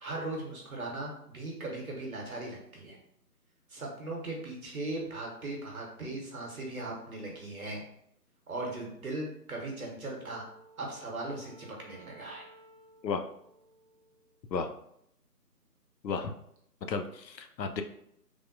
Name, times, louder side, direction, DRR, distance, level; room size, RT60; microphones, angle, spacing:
voice 1, 0.0-3.0 3.7-7.8 8.5-10.5 10.8-12.5, right 2 dB, 60° right, 0 dB, 1.0 m, -38 dB
Wind instrument woodwind instrument, 10.0-14.5, right 2 dB, 65° left, 1.3 m, -58 dB
voice 2, 16.9-17.8, left 5 dB, 85° left, 6 dB, 0.6 m, -33 dB
3.3 x 2.2 x 2.5 m, 0.72 s
figure-of-eight pair, 165°, 49 cm